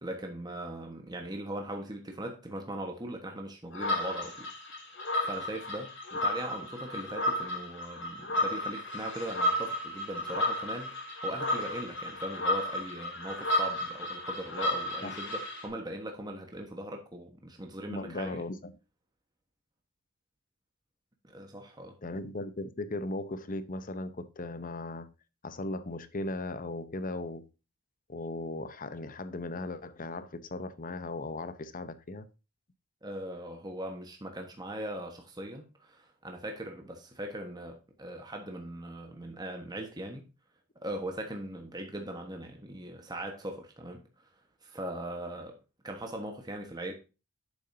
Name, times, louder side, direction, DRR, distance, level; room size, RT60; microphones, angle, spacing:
voice 1, 0.0-4.5 5.2-10.9 11.2-18.4 21.2-21.9 33.0-40.2 40.8-44.0 44.6-45.6 45.8-46.9, right 1 dB, 20° right, 1.3 m, -40 dB
sound 1, 3.7-15.7, left 1 dB, 55° left, 2.6 m, -33 dB
voice 2, 17.9-18.7 22.0-25.1 25.4-27.5 28.1-32.3, left 2 dB, 40° left, 0.8 m, -37 dB
9.5 x 7.1 x 2.7 m
head